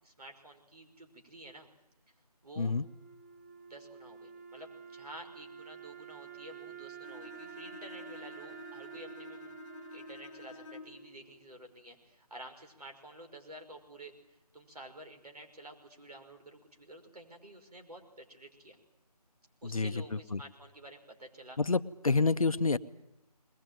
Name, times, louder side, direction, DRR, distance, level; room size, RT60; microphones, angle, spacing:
voice 1, 0.0-1.7 2.4-2.7 3.7-9.5 9.9-14.1 14.5-18.8 19.6-21.6, right 1 dB, 70° right, 4 dB, 5.7 m, -51 dB
Wind instrument woodwind instrument, 2.7-11.7, right 7 dB, 25° right, 1.1 m, -50 dB
Bowed string instrument, 7.0-11.1, left 4 dB, 10° left, 1.2 m, -50 dB
voice 2, 21.6-22.8, left 4 dB, 60° left, 12 dB, 0.9 m, -28 dB
21.5 x 20.0 x 9.3 m, 0.86 s
figure-of-eight pair, 175°, 20 cm